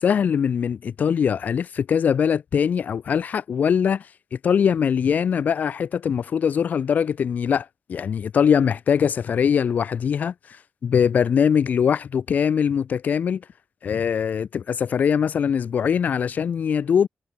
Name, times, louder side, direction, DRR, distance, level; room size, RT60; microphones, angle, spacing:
voice 1, 0.0-4.0 4.4-10.3 10.8-13.4 13.8-17.1, left 7 dB, 60° left, 2.4 m, -22 dB
wide cardioid pair, 170°, 3 cm